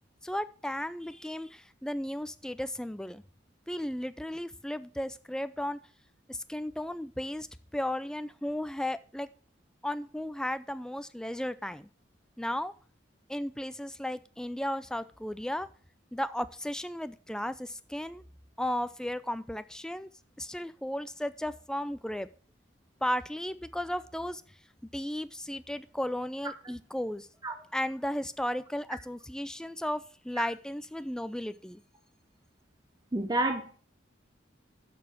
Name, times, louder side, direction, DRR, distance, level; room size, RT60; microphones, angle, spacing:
voice 1, 0.2-3.2 3.7-5.8 6.3-7.5 7.7-9.3 9.8-11.9 12.4-12.7 13.3-15.7 16.1-18.2 18.6-20.1 20.4-22.3 23.0-24.4 24.9-27.3 27.7-31.8, left 1 dB, 5° left, 13 dB, 0.3 m, -35 dB
voice 2, 33.1-33.8, right 2 dB, 20° right, 5 dB, 0.7 m, -29 dB
6.9 x 6.3 x 6.2 m, 0.41 s
head